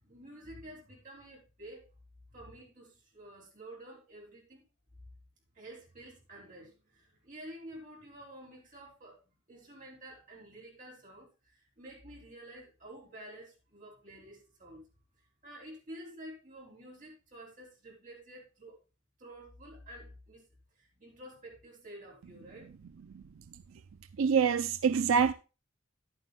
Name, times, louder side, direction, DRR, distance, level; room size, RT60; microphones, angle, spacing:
voice 1, 0.0-1.9 2.3-4.6 5.5-9.2 9.5-14.8 15.2-18.8 19.2-20.4 20.7-22.7, right 1 dB, 40° right, 4.9 m, -50 dB
voice 2, 24.2-25.3, right 6 dB, 80° right, 0.5 m, -25 dB
10.5 x 9.4 x 3.4 m
head